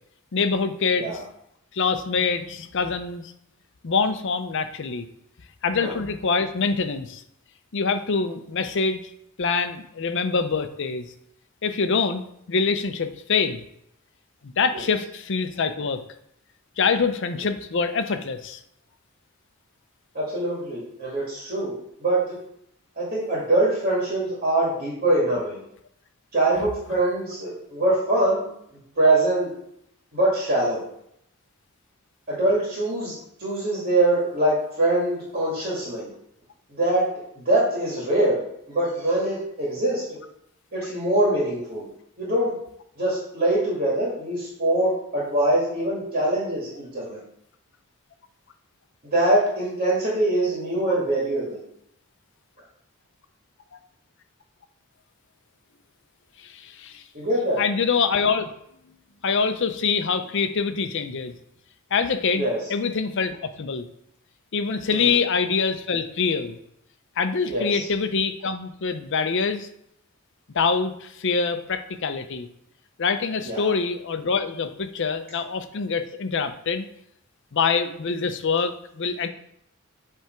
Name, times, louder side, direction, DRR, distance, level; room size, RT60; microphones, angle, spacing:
voice 1, 0.3-1.2 1.7-3.3 3.8-5.0 5.6-7.2 7.7-9.0 9.4-11.1 11.6-13.6 14.4-16.0 16.8-18.6 56.4-57.0 57.6-58.5 59.2-61.3 61.9-63.9 64.5-66.6 67.2-69.7 70.5-72.5 73.0-76.9 77.5-79.3, left 5 dB, 60° left, 9 dB, 0.6 m, -25 dB
voice 2, 20.1-21.7 22.0-22.4 23.0-25.6 26.3-28.4 28.7-29.5 30.1-30.8 32.3-36.1 36.7-37.1 37.4-38.4 38.7-40.2 40.7-41.9 42.2-42.6 43.0-47.2 49.0-51.6 57.1-57.6 62.3-62.6 64.9-65.1 67.5-67.9 73.4-73.7, right 1 dB, 40° right, -5 dB, 1.9 m, -23 dB
7.7 x 3.4 x 4.5 m, 0.74 s
head